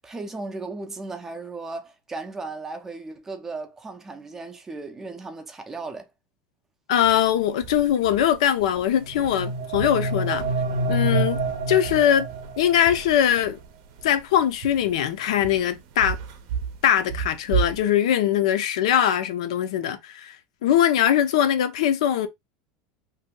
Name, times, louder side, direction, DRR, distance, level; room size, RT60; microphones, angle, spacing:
voice 1, 0.0-6.1, right 3 dB, 10° right, 0.5 m, -36 dB
voice 2, 6.9-10.5 10.9-11.4 11.7-12.3 12.6-13.6 14.0-16.2 16.8-20.4 20.6-22.3, left 10 dB, 85° left, 0.5 m, -21 dB
sound 1, 6.9-17.8, right 7 dB, 55° right, 0.6 m, -35 dB
sound 2, 9.0-12.9, right 2 dB, 90° right, 0.8 m, -27 dB
2.7 x 2.2 x 3.7 m
supercardioid pair, 165°, 3 cm